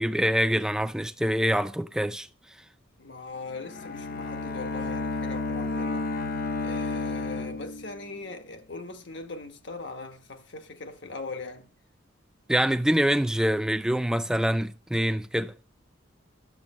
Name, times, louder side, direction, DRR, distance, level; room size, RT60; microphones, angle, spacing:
voice 1, 0.0-2.3 12.5-15.5, equal, 5° right, 0.4 m, -25 dB
voice 2, 3.0-6.1 6.6-11.7, left 3 dB, 65° left, 1.3 m, -40 dB
Bowed string instrument, 3.5-8.3, left 2 dB, 50° left, 0.8 m, -32 dB
11.0 x 7.1 x 5.5 m
head